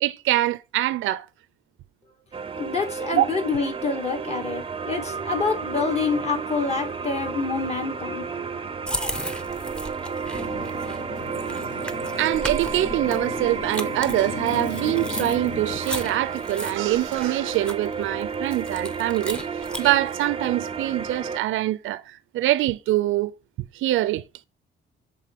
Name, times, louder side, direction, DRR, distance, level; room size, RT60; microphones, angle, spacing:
voice 1, 0.0-1.3 3.1-3.3 12.2-23.3 23.7-24.2, right 15 dB, 80° right, 0.5 m, -24 dB
sound 1, 2.3-21.4, right 5 dB, 25° right, 0.6 m, -32 dB
voice 2, 2.6-8.5, left 4 dB, 35° left, 2.2 m, -27 dB
sound 2, 8.9-20.1, equal, 5° left, 0.9 m, -36 dB
Motorcycle, 10.3-15.8, left 4 dB, 65° left, 1.7 m, -36 dB
7.5 x 3.7 x 3.6 m
cardioid pair, 90°, 20 cm